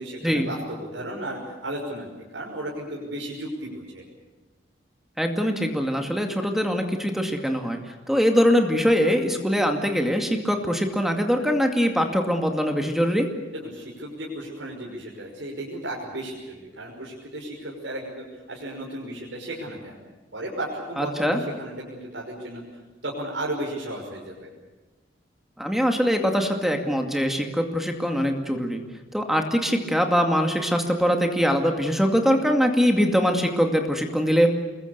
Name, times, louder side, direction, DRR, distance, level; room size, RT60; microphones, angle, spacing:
voice 1, 0.0-4.0 13.5-20.0 20.3-22.6 23.0-24.5, right 1 dB, 75° right, -4 dB, 6.0 m, -34 dB
voice 2, 5.2-7.8 8.1-13.3 21.0-21.4 25.6-28.8 29.1-34.5, equal, ahead, 4 dB, 2.3 m, -22 dB
27.5 x 22.0 x 6.8 m, 1.2 s
head